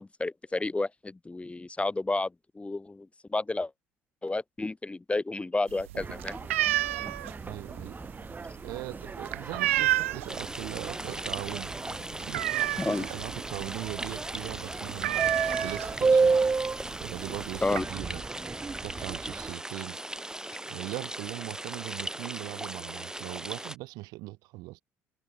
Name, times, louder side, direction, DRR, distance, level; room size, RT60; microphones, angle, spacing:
voice 1, 0.0-2.3 2.5-3.7 4.2-6.4 12.8-13.1 17.6-17.9, left 2 dB, 15° left, 0.9 m, -31 dB
sound 1, 5.7-10.4 10.8-11.1 11.4-11.5 11.9-13.2 13.6-13.7 14.0-14.2 14.5-14.6 15.0-16.2 17.0-17.1 17.4-17.8, right 16 dB, 90° right, 0.4 m, -29 dB
sound 2, 6.0-19.5, right 4 dB, 25° right, 0.7 m, -32 dB
voice 2, 7.4-8.0 8.6-11.7 12.2-18.2 18.8-20.0 20.7-24.8, right 22 dB, 75° right, 2.7 m, -40 dB
sound 3, 10.3-23.8, right 1 dB, 10° right, 2.6 m, -39 dB
hypercardioid pair, 55°, 7 cm